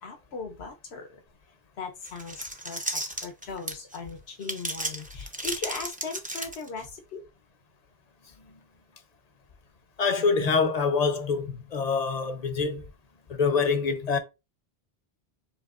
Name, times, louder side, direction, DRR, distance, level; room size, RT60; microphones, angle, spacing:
voice 1, 0.0-1.2 1.8-7.2, left 4 dB, 85° left, 1.2 m, -38 dB
sound 1, 2.0-4.0 4.4-6.8, right 1 dB, 10° right, 0.5 m, -34 dB
voice 2, 10.0-12.9 13.3-14.2, left 5 dB, 45° left, 0.8 m, -25 dB
7.0 x 3.0 x 2.5 m
omnidirectional pair, 1.0 m